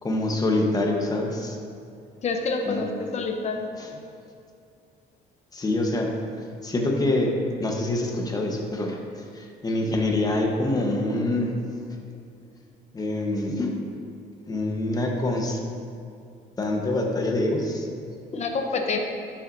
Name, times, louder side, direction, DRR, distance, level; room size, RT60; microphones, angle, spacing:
voice 1, 0.0-1.6 2.7-2.9 3.8-3.9 5.5-6.1 6.6-11.5 12.9-13.7 14.5-15.6 16.6-17.9 18.3-18.4, left 2 dB, 20° left, 1 dB, 1.2 m, -25 dB
voice 2, 2.2-3.7 18.3-19.0, left 4 dB, 40° left, 4 dB, 1.0 m, -27 dB
11.5 x 7.3 x 2.7 m, 2.5 s
cardioid pair, 110°, 17 cm